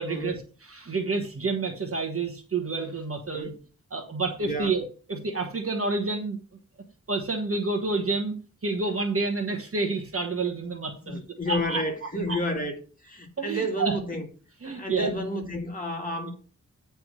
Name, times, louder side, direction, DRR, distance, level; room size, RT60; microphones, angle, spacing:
voice 1, 0.0-3.5 3.9-4.8 5.1-6.4 7.1-8.4 8.6-12.4 13.4-14.0 14.6-15.1, right 3 dB, 45° right, 1.2 m, -29 dB
voice 2, 11.0-12.7 13.0-14.3 14.6-16.3, equal, 25° left, 2.0 m, -31 dB
9.5 x 3.5 x 6.2 m
wide cardioid pair, 130°, 32 cm